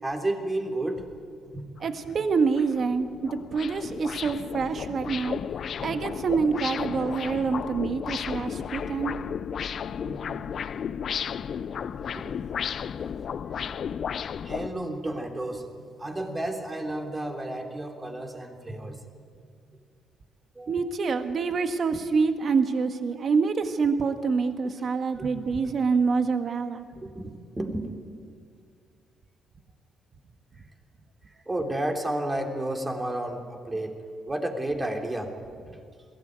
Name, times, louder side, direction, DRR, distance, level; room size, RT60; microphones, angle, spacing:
voice 1, 0.0-1.1 1.5-1.8 2.1-2.2 4.3-4.4 5.9-6.0 9.9-10.4 11.2-12.3 14.4-19.0 19.4-19.5 20.5-20.8 25.1-25.7 27.0-27.9 30.6-30.7 31.3-34.0 34.3-35.5, right 1 dB, 20° right, 3 dB, 3.4 m, -32 dB
sound 1, 1.8-1.9 2.3-14.7, left 7 dB, 55° left, 0.5 m, -33 dB
voice 2, 1.8-5.4 5.8-9.1 20.7-26.8, right 5 dB, 50° right, 7 dB, 1.6 m, -26 dB
21.5 x 17.0 x 9.4 m, 2.3 s
cardioid pair, 90°, 0 cm